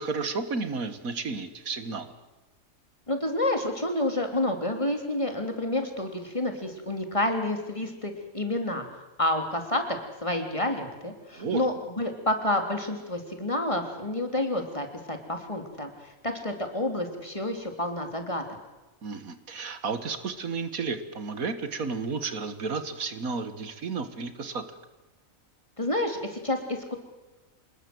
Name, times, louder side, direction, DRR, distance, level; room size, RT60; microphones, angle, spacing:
voice 1, 0.0-2.1 11.3-11.6 19.0-24.8, right 4 dB, 85° right, 10 dB, 2.1 m, -32 dB
voice 2, 3.1-8.9 9.2-9.8 10.2-15.9 16.2-18.4 25.8-27.0, left 1 dB, 20° left, 4 dB, 3.4 m, -29 dB
26.5 x 20.5 x 7.9 m, 1.1 s
omnidirectional pair, 1.4 m